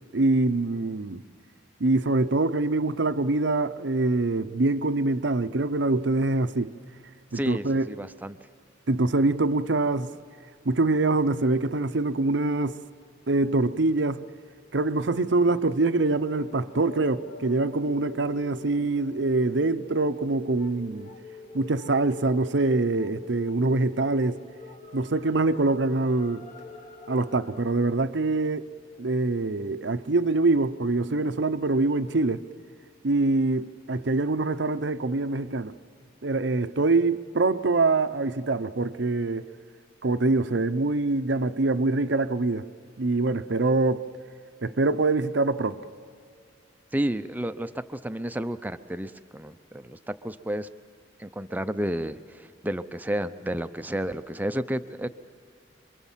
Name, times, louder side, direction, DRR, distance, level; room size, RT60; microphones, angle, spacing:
voice 1, 0.1-1.2 1.8-6.7 7.3-7.9 8.9-10.1 10.6-12.8 13.3-14.3 14.7-21.1 21.5-24.4 24.9-26.4 27.1-28.7 29.0-32.4 33.0-35.7 36.2-39.5 40.0-42.7 43.0-44.1 44.6-45.8, right 2 dB, 65° right, 0.7 m, -24 dB
voice 2, 7.3-8.4 46.9-50.7 51.2-55.1, right 1 dB, 10° right, 0.6 m, -31 dB
sound 1, 15.8-27.6, left 3 dB, 40° left, 1.5 m, -45 dB
27.5 x 23.0 x 7.4 m
head